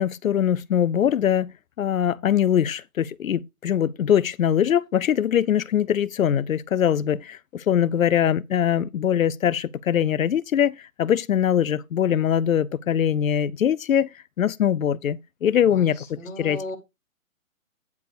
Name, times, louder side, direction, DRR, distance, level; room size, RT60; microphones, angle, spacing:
voice 1, 0.0-1.5 1.8-14.1 14.4-16.0 16.4-16.6, left 9 dB, 80° left, 0.7 m, -22 dB
voice 2, 15.7-16.7, left 2 dB, 10° left, 1.0 m, -36 dB
9.5 x 4.6 x 4.9 m
hypercardioid pair, 165°, 40 cm